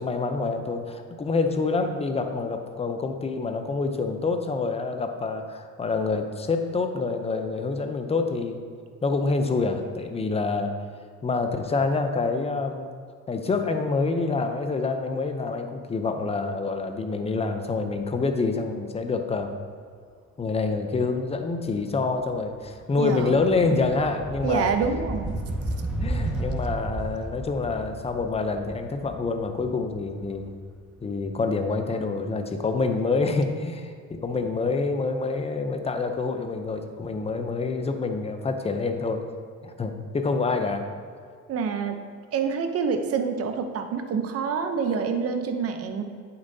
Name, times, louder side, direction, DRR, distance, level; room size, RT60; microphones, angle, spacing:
voice 1, 0.0-8.6 9.0-10.8 11.2-12.9 13.3-19.6 20.4-24.7 26.0-30.5 31.0-39.2 39.6-40.9, left 3 dB, 20° left, 6 dB, 0.6 m, -27 dB
sound 1, 21.6-21.9 22.2-31.1, right 1 dB, 5° right, 1.5 m, -33 dB
voice 2, 23.0-23.4 24.4-25.3 41.5-42.0 42.3-46.0, right 5 dB, 50° right, 6 dB, 0.8 m, -27 dB
8.7 x 6.9 x 2.8 m, 2.1 s
cardioid pair, 115°, 30 cm